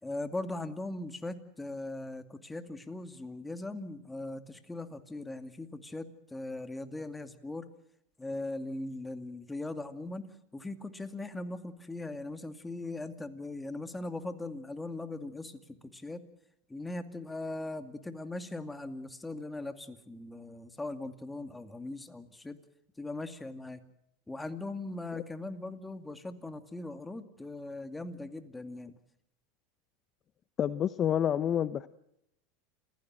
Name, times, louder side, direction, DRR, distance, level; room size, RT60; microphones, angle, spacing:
voice 1, 0.0-7.7 8.2-10.2 10.5-16.2 16.7-22.6 23.0-23.8 24.3-28.9, left 2 dB, 10° left, 9 dB, 2.3 m, -40 dB
voice 2, 30.6-31.9, left 9 dB, 35° left, 14 dB, 0.8 m, -28 dB
28.0 x 16.0 x 7.6 m, 0.77 s
hypercardioid pair, 95°, 0 cm